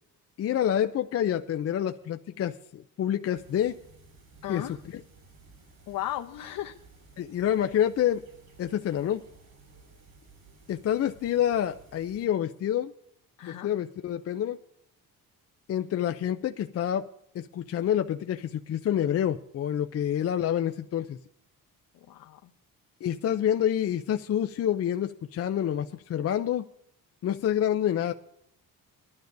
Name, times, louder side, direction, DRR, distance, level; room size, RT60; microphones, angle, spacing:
voice 1, 0.4-3.8 4.5-5.0 7.2-8.2 8.6-9.2 10.7-12.9 13.5-14.6 15.7-17.1 17.3-21.2 23.0-26.6 27.2-28.1, left 10 dB, 40° left, 7 dB, 0.5 m, -27 dB
sound 1, 3.3-12.3, right 3 dB, 50° right, 6.0 m, -55 dB
voice 2, 4.4-4.8 5.9-6.8 13.4-13.7 22.1-22.5, left 13 dB, 65° left, 2 dB, 0.8 m, -36 dB
21.0 x 11.5 x 2.6 m, 0.76 s
cardioid pair, 150°, 37 cm